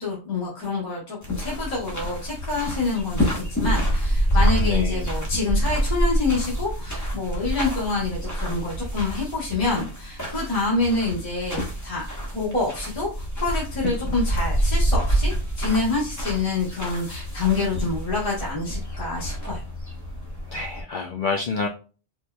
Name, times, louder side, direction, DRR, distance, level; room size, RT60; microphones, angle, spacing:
voice 1, 0.0-12.1 12.3-13.1 13.4-19.6, left 3 dB, 35° left, -5 dB, 1.3 m, -27 dB
Walking in nature, 1.2-20.8, equal, 15° left, 0.9 m, -27 dB
voice 2, 4.6-5.0 20.5-21.7, left 4 dB, 60° left, 3 dB, 0.6 m, -28 dB
4.5 x 2.8 x 2.2 m, 0.34 s
omnidirectional pair, 1.2 m